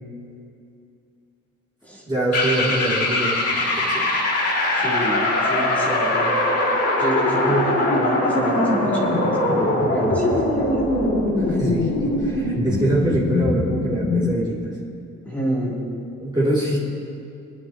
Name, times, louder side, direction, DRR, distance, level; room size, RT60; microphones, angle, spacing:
voice 1, 2.1-4.1 7.3-7.7 11.5-11.9 12.2-14.7 16.2-16.8, right 1 dB, 15° right, -7 dB, 2.6 m, -24 dB
sound 1, 2.3-14.4, left 1 dB, 55° left, 2.3 m, -22 dB
voice 2, 4.7-6.4 7.0-10.9 15.2-15.8, equal, 5° left, -6 dB, 2.8 m, -27 dB
23.5 x 9.7 x 2.9 m, 2.6 s
cardioid pair, 90°, 30 cm